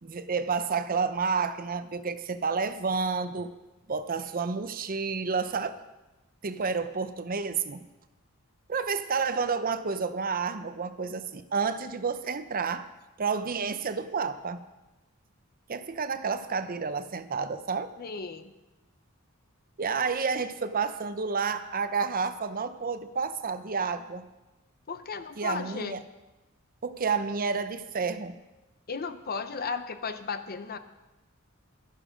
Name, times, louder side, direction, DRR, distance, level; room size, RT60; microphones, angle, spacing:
voice 1, 0.0-3.5 3.9-5.8 6.4-7.8 8.7-12.9 13.2-14.6 15.7-17.9 19.8-24.2 25.4-26.0 26.8-28.4, right 5 dB, 45° right, 11 dB, 0.7 m, -30 dB
voice 2, 18.0-18.5 24.9-26.0 28.9-30.8, left 5 dB, 45° left, 10 dB, 0.7 m, -35 dB
13.0 x 11.0 x 5.1 m, 1.1 s
head